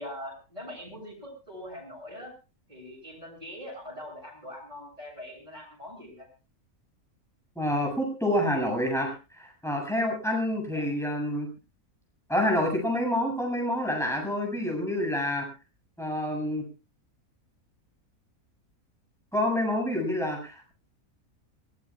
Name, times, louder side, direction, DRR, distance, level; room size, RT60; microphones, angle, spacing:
voice 1, 0.0-2.3 2.7-6.3 10.7-10.9, left 1 dB, 25° right, -4 dB, 7.5 m, -42 dB
voice 2, 7.6-11.5 12.3-15.4 16.0-16.6 19.3-20.7, left 1 dB, ahead, 1 dB, 7.3 m, -28 dB
24.5 x 19.0 x 2.4 m, 0.32 s
omnidirectional pair, 1.6 m